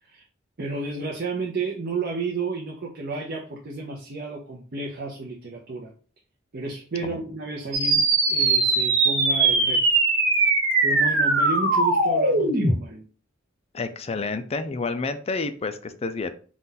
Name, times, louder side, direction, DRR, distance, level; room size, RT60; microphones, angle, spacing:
voice 1, 0.6-5.9 6.5-9.8 10.8-13.0, right 3 dB, 55° right, -1 dB, 0.7 m, -32 dB
sound 1, 7.7-12.7, right 3 dB, 85° right, 1.2 m, -20 dB
voice 2, 13.7-16.3, left 3 dB, 35° left, 10 dB, 0.4 m, -29 dB
4.1 x 2.4 x 3.8 m, 0.40 s
head